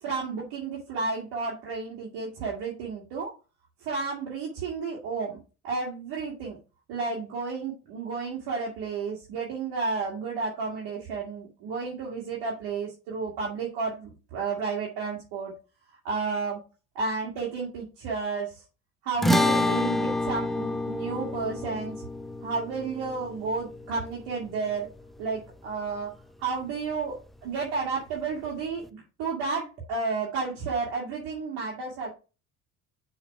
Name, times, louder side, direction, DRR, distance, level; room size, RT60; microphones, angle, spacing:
voice 1, 0.0-3.3 3.8-5.4 5.6-6.6 6.9-15.5 16.0-16.6 17.0-18.6 19.0-21.9 22.4-24.9 25.2-26.1 26.4-32.1, right 4 dB, 70° right, -4 dB, 2.2 m, -32 dB
sound 1, 19.2-25.7, left 1 dB, ahead, 0.6 m, -29 dB
6.7 x 4.2 x 4.6 m, 0.32 s
hypercardioid pair, 55°, 42 cm